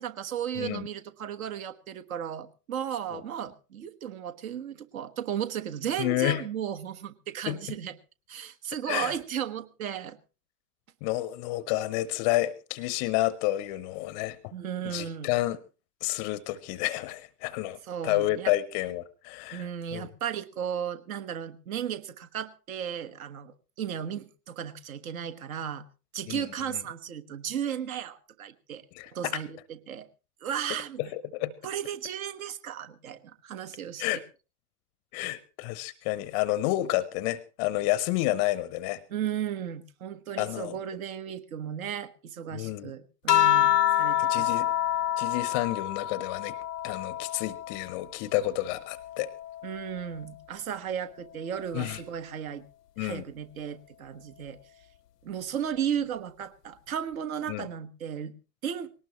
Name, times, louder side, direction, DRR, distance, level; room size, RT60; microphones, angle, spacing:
voice 1, 0.0-7.9 8.3-10.2 14.5-15.3 17.9-18.5 19.5-25.8 26.1-28.8 29.1-29.6 29.9-30.1 30.4-31.0 31.6-34.0 39.1-44.7 49.6-52.6 53.0-54.6 55.2-58.3 58.6-58.9, right 9 dB, 60° right, 10 dB, 1.4 m, -35 dB
voice 2, 0.6-0.9 3.1-3.2 6.0-6.4 7.5-7.6 8.9-9.1 11.0-14.4 14.8-15.6 16.0-17.8 18.0-20.1 26.3-26.4 28.9-29.4 31.0-31.5 34.0-34.2 35.1-39.0 40.4-40.8 42.5-42.9 44.2-44.7 45.2-46.6 46.8-49.3 51.7-52.0 53.0-53.2 57.5-57.7, left 16 dB, 30° left, 18 dB, 0.6 m, -30 dB
sound 1, 43.3-48.1 48.5-50.3 51.5-52.0, left 12 dB, 80° left, 0.7 m, -28 dB
20.0 x 18.0 x 3.0 m, 0.34 s
figure-of-eight pair, 110°, 48 cm